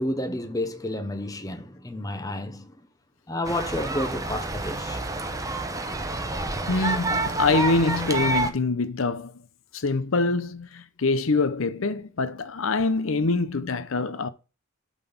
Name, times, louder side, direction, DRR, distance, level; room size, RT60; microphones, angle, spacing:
voice 1, 0.0-2.7 3.3-5.0, left 1 dB, 15° left, 0.8 m, -30 dB
sound 1, 3.4-8.5, right 2 dB, 15° right, 0.8 m, -28 dB
voice 2, 6.7-9.3 9.7-14.3, left 3 dB, 70° left, 0.7 m, -25 dB
9.0 x 4.0 x 7.0 m
head